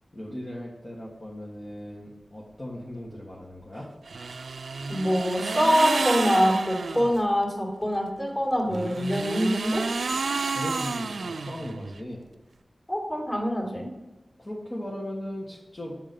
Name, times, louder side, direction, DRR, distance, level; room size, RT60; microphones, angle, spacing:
voice 1, 0.1-3.9 10.5-12.2 14.4-15.9, left 1 dB, 35° left, -5 dB, 1.4 m, -37 dB
sound 1, 4.1-7.2 8.6-12.0, right 4 dB, 85° right, 0.3 m, -30 dB
voice 2, 4.9-9.8 12.9-13.9, equal, 20° left, -3 dB, 2.5 m, -24 dB
7.6 x 3.6 x 5.2 m, 1.1 s
wide cardioid pair, 75°, 0 cm